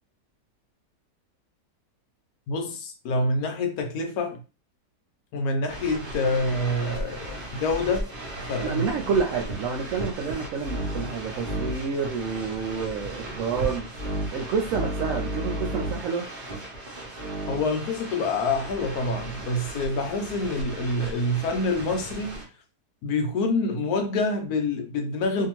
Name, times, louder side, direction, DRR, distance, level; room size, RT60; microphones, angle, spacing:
voice 1, 2.5-4.4 5.3-8.1 8.5-8.8 17.5-22.4 23.0-25.5, left 2 dB, 70° left, 1.0 m, -26 dB
sound 1, 5.7-22.4, right 1 dB, 40° right, 0.8 m, -35 dB
voice 2, 8.6-13.9 14.3-16.2, right 5 dB, 70° right, 0.8 m, -28 dB
2.7 x 2.5 x 2.9 m
omnidirectional pair, 1.8 m